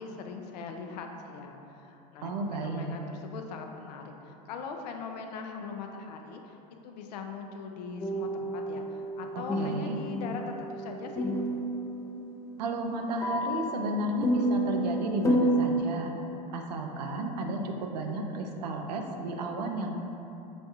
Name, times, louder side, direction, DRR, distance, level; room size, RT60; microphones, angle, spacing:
voice 1, 0.0-6.6 6.8-11.3, left 5 dB, 85° left, 4 dB, 0.4 m, -41 dB
voice 2, 2.2-3.0 9.3-10.0 12.6-16.1 16.5-20.0, right 2 dB, 90° right, 3 dB, 0.4 m, -33 dB
sound 1, 8.0-15.8, right 1 dB, 15° left, 0.3 m, -30 dB
5.0 x 2.3 x 2.7 m, 3.0 s
hypercardioid pair, 95°, 21 cm